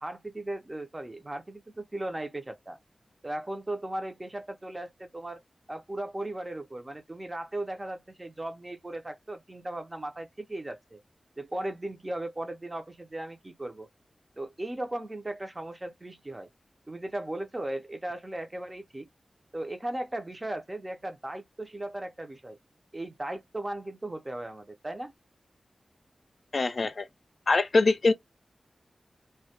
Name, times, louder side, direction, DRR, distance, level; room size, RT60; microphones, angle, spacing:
voice 1, 0.0-2.8 3.2-5.4 5.7-11.0 11.4-13.9 14.4-16.5 16.9-19.1 19.5-22.6 22.9-25.1, right 1 dB, 30° right, 0.5 m, -37 dB
voice 2, 26.5-27.1 27.5-28.1, left 3 dB, 60° left, 0.3 m, -23 dB
2.2 x 2.1 x 2.7 m
cardioid pair, 55°, 0 cm